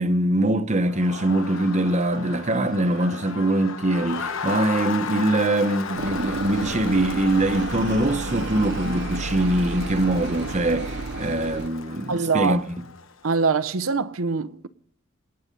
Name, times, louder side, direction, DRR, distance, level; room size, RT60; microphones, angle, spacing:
voice 1, 0.0-12.6, right 1 dB, 35° right, 0.9 m, -23 dB
Crowd, 0.8-13.3, left 5 dB, 75° left, 1.1 m, -35 dB
sound 1, 6.0-11.7, right 3 dB, 55° right, 0.5 m, -32 dB
voice 2, 12.1-12.6 13.2-14.7, right 4 dB, 85° right, 0.8 m, -23 dB
26.5 x 9.6 x 5.3 m
head